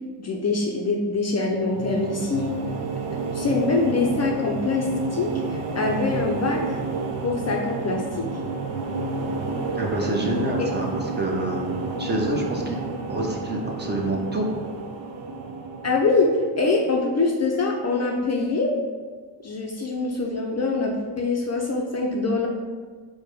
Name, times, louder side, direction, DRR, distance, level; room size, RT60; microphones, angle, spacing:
voice 1, 0.2-2.6 3.3-6.8 7.2-8.2 15.8-18.7 19.4-22.5, left 3 dB, 35° left, 0 dB, 0.4 m, -24 dB
sound 1, 1.4-16.7, right 4 dB, 90° right, 0.6 m, -31 dB
voice 2, 9.8-12.8 13.1-14.5, right 1 dB, 25° right, -1 dB, 0.6 m, -27 dB
4.7 x 2.2 x 4.7 m, 1.5 s
cardioid pair, 115°, 45 cm